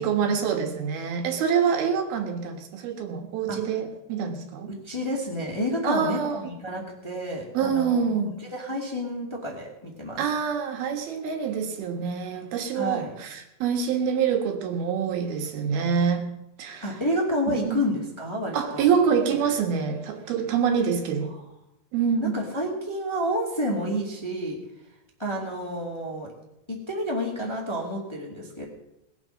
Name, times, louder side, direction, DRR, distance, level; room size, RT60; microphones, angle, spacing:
voice 1, 0.0-4.7 5.8-6.5 7.5-8.4 10.2-16.3 16.6-16.9 17.5-17.8 18.5-21.3 21.9-22.4, right 6 dB, 90° right, 4 dB, 3.5 m, -26 dB
voice 2, 4.7-8.0 8.5-10.2 12.7-13.1 16.8-18.9 21.3-21.4 22.2-24.6 25.2-26.3 26.7-28.6, equal, 10° left, -1 dB, 1.6 m, -30 dB
20.0 x 7.6 x 6.4 m, 0.87 s
omnidirectional pair, 4.2 m